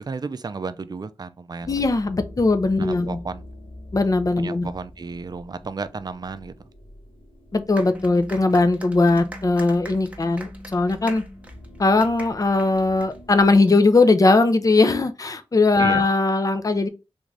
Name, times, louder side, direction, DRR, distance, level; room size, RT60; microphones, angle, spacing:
voice 1, 0.0-1.8 2.8-3.5 4.4-6.5 15.8-16.1, right 4 dB, 40° right, 0.4 m, -33 dB
sound 1, 1.6-13.6, left 1 dB, 65° left, 1.8 m, -43 dB
voice 2, 1.7-3.2 3.9-4.7 7.5-11.2 11.8-16.9, left 3 dB, 35° left, 0.5 m, -19 dB
sound 2, 7.8-13.7, right 1 dB, 15° right, 0.8 m, -43 dB
3.5 x 2.6 x 3.2 m
wide cardioid pair, 80°, 10 cm